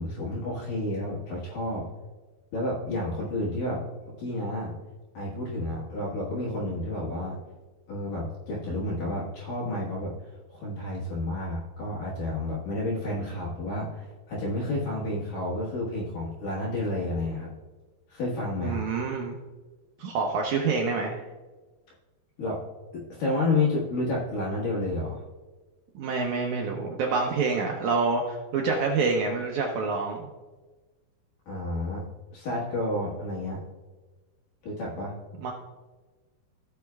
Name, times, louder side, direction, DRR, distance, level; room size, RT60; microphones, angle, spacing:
voice 1, 0.0-1.8 2.5-3.8 4.2-4.7 5.1-7.4 7.9-10.1 10.5-17.5 18.1-18.8 22.4-22.6 22.9-25.2 31.5-32.0 32.3-33.6 34.6-35.1, left 2 dB, 65° left, -6 dB, 2.9 m, -30 dB
voice 2, 18.6-19.4 20.0-21.2 25.9-30.3 35.4-35.5, right 4 dB, 80° right, 0 dB, 1.7 m, -27 dB
16.5 x 6.2 x 2.3 m, 1.3 s
omnidirectional pair, 4.5 m